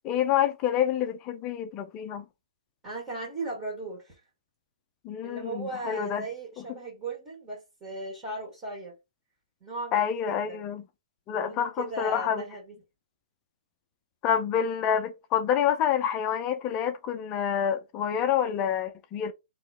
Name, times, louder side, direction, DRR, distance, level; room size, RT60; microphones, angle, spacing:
voice 1, 0.0-2.2 5.0-6.2 9.9-10.8 11.3-12.4 14.2-19.3, left 9 dB, 15° left, 0.4 m, -27 dB
voice 2, 2.8-4.2 5.2-8.9 9.6-10.6 11.3-12.8, right 2 dB, 15° right, 1.7 m, -37 dB
3.7 x 3.0 x 4.1 m
hypercardioid pair, 165°, 4 cm